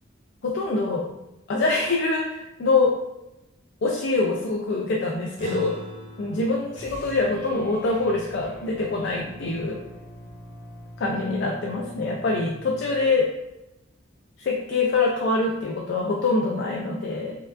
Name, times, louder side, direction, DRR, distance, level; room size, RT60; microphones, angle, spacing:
voice 1, 0.4-1.1 1.5-3.0 3.8-5.8 6.2-9.8 11.0-13.3 14.4-17.4, left 3 dB, 55° left, 0 dB, 0.4 m, -24 dB
sound 1, 5.4-10.0, equal, 40° right, 0.6 m, -44 dB
sound 2, 6.7-13.1, equal, 85° left, 1.1 m, -44 dB
4.3 x 2.5 x 2.4 m, 0.92 s
head